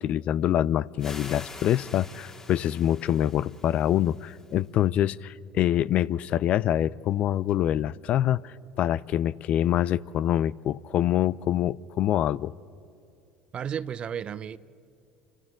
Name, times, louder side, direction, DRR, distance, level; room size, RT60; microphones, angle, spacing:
voice 1, 0.0-12.5, left 11 dB, 55° left, 0.4 m, -25 dB
sound 1, 1.0-4.7, left 3 dB, 25° left, 2.1 m, -45 dB
voice 2, 13.5-14.6, right 8 dB, 40° right, 0.7 m, -33 dB
29.0 x 26.0 x 3.8 m
hypercardioid pair, 70°, 3 cm